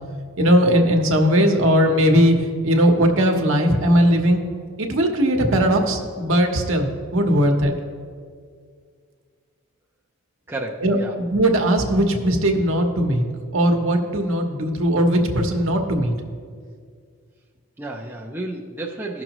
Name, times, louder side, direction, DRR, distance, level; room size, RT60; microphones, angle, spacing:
voice 1, 0.4-4.5 4.8-7.7 10.8-13.3 13.5-16.1, equal, 60° right, 3 dB, 1.0 m, -19 dB
voice 2, 10.5-11.2 17.8-19.2, right 2 dB, 10° right, -3 dB, 0.5 m, -31 dB
16.0 x 6.2 x 3.0 m, 2.1 s
head